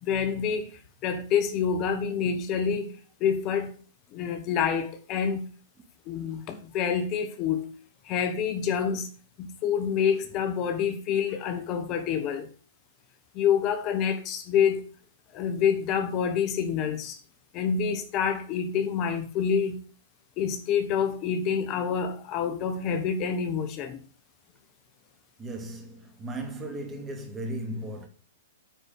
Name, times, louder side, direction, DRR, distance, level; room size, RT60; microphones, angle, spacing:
voice 1, 0.0-3.7 4.1-5.5 6.1-7.7 8.0-9.1 9.4-12.5 13.3-14.8 15.3-17.2 17.5-19.8 20.4-24.0, left 7 dB, 35° left, 1.3 m, -27 dB
voice 2, 25.4-28.1, right 1 dB, 20° right, 2.3 m, -36 dB
9.2 x 4.9 x 6.5 m
hypercardioid pair, 120°, 0 cm